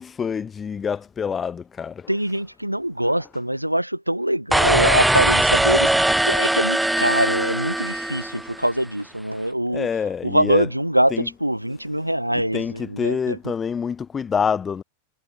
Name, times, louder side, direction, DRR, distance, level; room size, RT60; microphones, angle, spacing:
voice 1, 0.0-2.2 3.0-3.1 9.7-11.4 12.0-14.8, left 6 dB, 20° left, 1.1 m, -27 dB
voice 2, 2.1-9.9 10.2-13.5, right 1 dB, 90° right, 2.0 m, -23 dB
sound 1, 4.5-8.7, right 1 dB, 5° right, 1.3 m, -20 dB
figure-of-eight pair, 90°, 0 cm